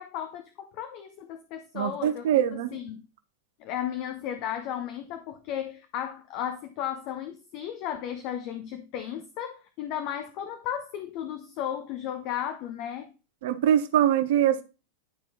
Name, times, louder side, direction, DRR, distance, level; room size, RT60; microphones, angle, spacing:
voice 1, 0.0-3.1 3.6-13.1, left 10 dB, 40° left, 0.9 m, -35 dB
voice 2, 1.7-2.7 13.4-14.6, right 10 dB, 55° right, 1.0 m, -23 dB
11.0 x 4.6 x 4.0 m
figure-of-eight pair, 90°, 0 cm